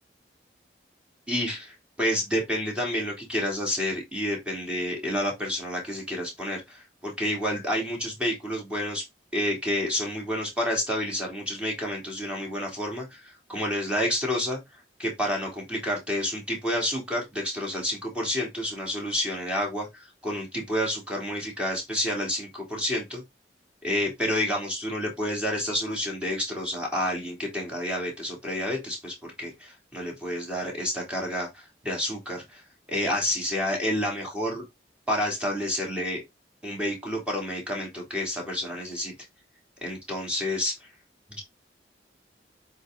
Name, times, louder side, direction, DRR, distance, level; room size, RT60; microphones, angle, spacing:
voice 1, 1.3-9.0 9.3-23.2 23.8-32.6 32.9-34.6 35.1-36.2 36.6-39.1 39.8-40.7 41.3-41.4, left 1 dB, 5° right, 3.2 m, -29 dB
8.0 x 4.8 x 3.9 m
head